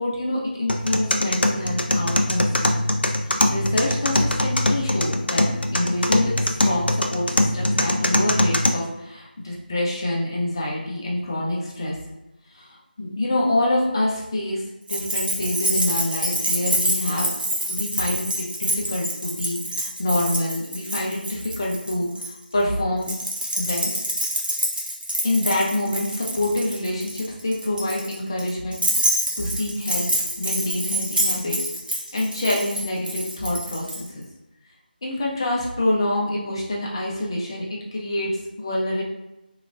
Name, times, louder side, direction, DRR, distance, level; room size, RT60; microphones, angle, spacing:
voice 1, 0.0-2.8 3.3-12.0 12.5-14.6 14.9-17.3 17.7-23.1 23.6-23.9 25.2-28.8 29.4-30.1 30.4-31.6 32.1-34.2 35.0-37.6 37.9-39.0, left 1 dB, 25° left, -4 dB, 0.6 m, -26 dB
sound 1, 0.7-8.7, left 1 dB, 85° left, 0.4 m, -22 dB
Keys jangling, 14.9-22.3 23.0-34.0, right 1 dB, 65° right, 0.8 m, -27 dB
3.1 x 2.9 x 2.5 m, 0.91 s
figure-of-eight pair, 165°, 5 cm